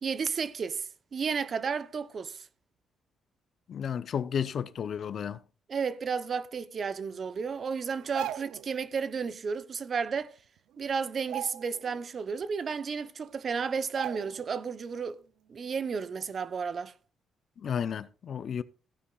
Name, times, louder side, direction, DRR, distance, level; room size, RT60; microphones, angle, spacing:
voice 1, 0.0-2.5 5.7-10.3 10.8-15.2 15.5-16.9, right 5 dB, 45° right, 0.7 m, -32 dB
voice 2, 3.7-5.4 17.6-18.6, left 8 dB, 55° left, 0.6 m, -32 dB
sound 1, 8.0-8.7 10.2-10.3 10.6-10.8 11.2-12.0 12.4-12.5 13.3-13.4 13.9-14.6 14.9-15.1, right 12 dB, 85° right, 0.4 m, -39 dB
15.5 x 9.8 x 2.4 m
cardioid pair, 90°, 0 cm